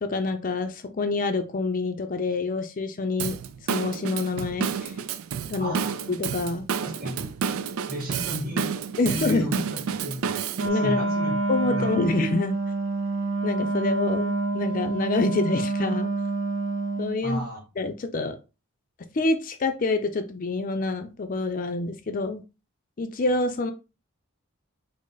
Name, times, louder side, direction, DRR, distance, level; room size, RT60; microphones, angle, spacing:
voice 1, 0.0-3.4 3.7-4.9 5.5-5.8 6.1-6.7 9.0-9.5 10.6-11.0 11.5-12.6 13.4-16.1 17.0-17.4 17.8-18.4 19.1-22.4 23.0-23.7, left 3 dB, 40° left, 8 dB, 0.4 m, -27 dB
Drum kit / Drum, 3.2-10.7, right 6 dB, 90° right, 0.4 m, -30 dB
voice 2, 5.6-5.9 6.8-7.3 7.9-8.7 9.1-10.4 10.7-11.4 11.6-12.0 17.2-17.6, right 1 dB, 45° right, -1 dB, 1.8 m, -33 dB
Wind instrument woodwind instrument, 10.5-17.2, right 3 dB, 70° right, 0.7 m, -27 dB
5.2 x 2.0 x 3.9 m, 0.29 s
head